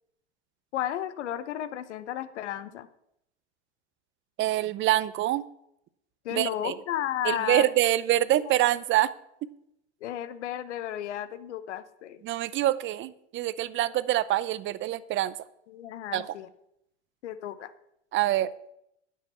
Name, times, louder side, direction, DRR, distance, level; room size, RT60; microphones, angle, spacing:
voice 1, 0.7-2.9 6.2-7.6 8.5-8.6 10.0-12.2 15.7-16.5 17.2-17.7, left 11 dB, 80° left, 14 dB, 0.9 m, -33 dB
voice 2, 4.4-5.4 6.3-6.7 7.2-9.1 12.2-15.3 16.1-16.3 18.1-18.5, right 14 dB, 35° right, 17 dB, 0.7 m, -25 dB
10.0 x 6.2 x 8.1 m, 0.77 s
hypercardioid pair, 105°, 34 cm